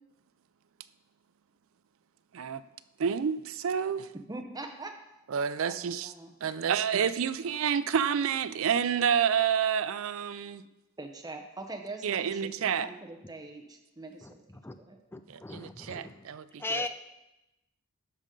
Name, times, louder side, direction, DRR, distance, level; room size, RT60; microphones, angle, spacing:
voice 1, 3.0-4.1 5.3-6.1 6.4-10.6 12.0-12.9 15.3-16.9, right 7 dB, 65° right, 14 dB, 0.4 m, -29 dB
voice 2, 4.3-5.0 5.6-6.3 11.0-14.4 14.8-15.0, right 2 dB, 15° right, 4 dB, 0.7 m, -43 dB
voice 3, 15.1-16.2 16.6-16.9, left 3 dB, 10° left, 9 dB, 0.3 m, -37 dB
12.0 x 5.1 x 3.7 m, 0.95 s
head